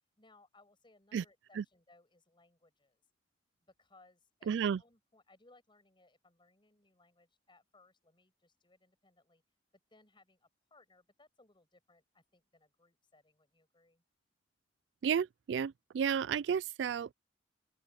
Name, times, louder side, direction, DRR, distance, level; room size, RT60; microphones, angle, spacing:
voice 1, 0.2-3.0 3.6-4.5 4.8-9.4 9.9-14.0, left 2 dB, 25° left, 6.7 m, -66 dB
voice 2, 4.5-4.8 15.0-17.1, right 7 dB, 65° right, 0.3 m, -32 dB
open air
head